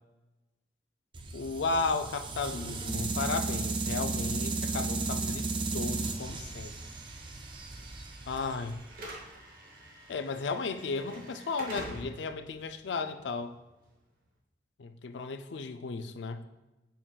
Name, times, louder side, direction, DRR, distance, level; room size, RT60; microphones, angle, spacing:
sound 1, 1.1-9.2, right 3 dB, 25° right, 0.4 m, -34 dB
voice 1, 1.3-5.5 5.7-6.7 8.3-8.8 10.1-13.5 14.8-16.4, left 4 dB, 80° left, 9 dB, 0.4 m, -34 dB
Slam / Alarm, 6.2-14.3, right 1 dB, 50° right, 1.0 m, -48 dB
7.4 x 5.6 x 2.3 m, 1.1 s
head